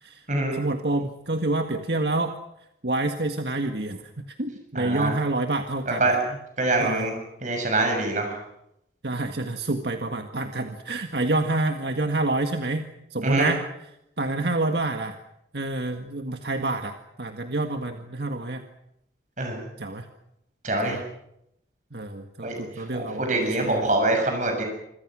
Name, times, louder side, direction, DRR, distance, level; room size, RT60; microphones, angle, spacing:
voice 1, 0.5-2.3 2.8-6.2 6.8-7.1 9.0-13.6 14.2-15.2 15.5-18.6 19.8-20.1 20.8-21.0 21.9-23.9, right 2 dB, 65° right, 5 dB, 1.8 m, -28 dB
voice 2, 4.8-5.1 5.9-6.2 6.6-7.1 7.4-8.3 13.2-13.5 19.4-19.6 20.6-21.0 22.4-22.5 22.9-24.6, right 2 dB, 45° right, 3 dB, 6.9 m, -24 dB
27.5 x 25.0 x 6.3 m, 0.79 s
head